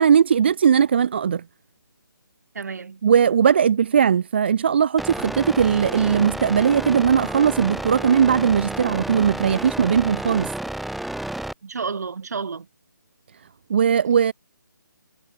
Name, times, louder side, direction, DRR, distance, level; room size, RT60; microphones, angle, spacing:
voice 1, 0.0-1.4 3.0-10.5 13.7-14.3, right 7 dB, 30° right, 1.0 m, -19 dB
voice 2, 2.5-3.0 11.6-12.7, right 5 dB, 50° right, 3.8 m, -30 dB
sound 1, 5.0-11.5, right 1 dB, ahead, 3.2 m, -31 dB
hypercardioid pair, 170°, 11 cm